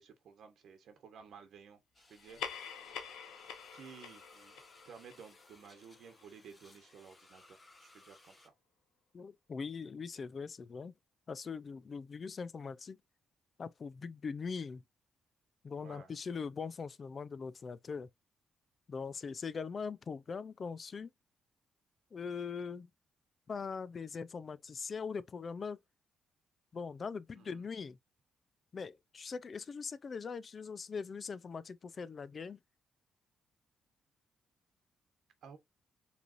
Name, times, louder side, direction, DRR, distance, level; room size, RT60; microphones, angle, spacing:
voice 1, 0.0-2.4 2.8-3.0 3.7-8.5 15.7-16.1 27.4-27.6 35.4-35.6, right 6 dB, 70° right, 1.1 m, -55 dB
sound 1, 1.9-8.5, left 2 dB, 20° left, 1.0 m, -62 dB
Wosh effect, 2.1-7.0, left 7 dB, 90° left, 0.9 m, -47 dB
voice 2, 9.1-11.0 11.3-13.0 13.6-14.8 15.6-18.1 18.9-21.1 22.1-22.9 23.5-25.8 26.7-28.0 28.7-32.6, left 5 dB, 40° left, 0.4 m, -41 dB
5.0 x 3.3 x 2.5 m
cardioid pair, 105°, 0 cm